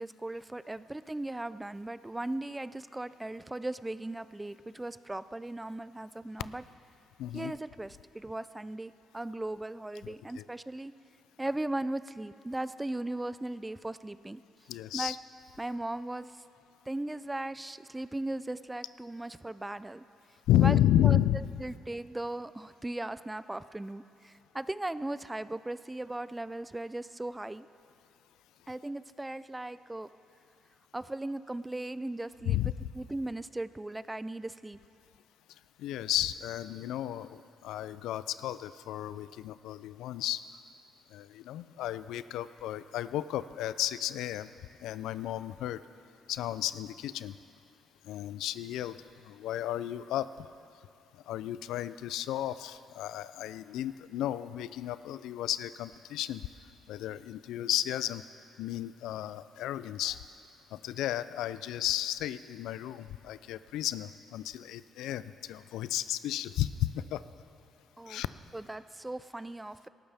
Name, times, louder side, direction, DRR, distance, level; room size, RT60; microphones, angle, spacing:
voice 1, 0.0-6.6 7.3-10.9 11.4-14.4 14.9-15.1 15.6-16.4 16.9-20.0 20.6-21.2 21.6-27.7 28.7-30.1 30.9-34.8 68.0-68.2 68.5-69.9, right 1 dB, 10° right, 15 dB, 0.3 m, -37 dB
voice 2, 7.2-7.5 10.0-10.4 14.7-15.2 20.5-21.4 32.4-32.7 35.8-40.4 41.1-44.5 44.8-45.8 46.3-47.3 48.1-49.0 49.2-50.3 51.3-56.4 56.9-58.2 58.6-60.2 60.7-67.2 68.1-68.3, left 12 dB, 90° left, 15 dB, 0.3 m, -32 dB
18.5 x 13.5 x 3.5 m, 2.7 s
cardioid pair, 90°, 0 cm